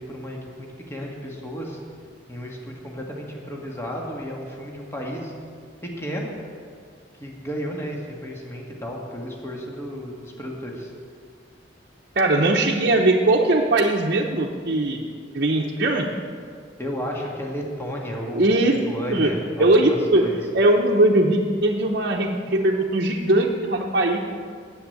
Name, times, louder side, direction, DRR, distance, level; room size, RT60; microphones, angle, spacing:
voice 1, 0.0-1.8 2.3-5.3 5.8-6.3 7.2-10.9 16.8-18.5 18.9-20.4, equal, 15° left, -1 dB, 1.7 m, -33 dB
voice 2, 12.2-15.1 15.3-16.1 18.3-18.8 19.1-19.3 19.6-20.3 20.5-24.2, right 2 dB, 55° right, -3 dB, 0.9 m, -20 dB
10.0 x 8.0 x 9.2 m, 2.2 s
head